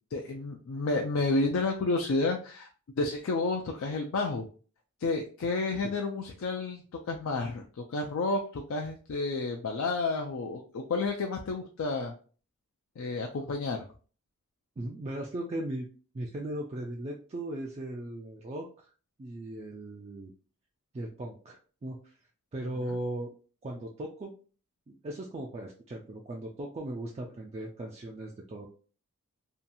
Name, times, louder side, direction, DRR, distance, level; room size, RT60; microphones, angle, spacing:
voice 1, 0.1-2.7 3.0-4.5 5.0-12.1 13.0-13.8, left 3 dB, 65° left, 2 dB, 0.4 m, -30 dB
voice 2, 14.8-15.9 16.1-18.9 19.2-20.3 20.9-22.2 22.5-23.3 23.6-24.3 24.9-28.7, right 1 dB, 30° right, 0 dB, 0.3 m, -38 dB
2.8 x 2.3 x 2.5 m, 0.39 s
head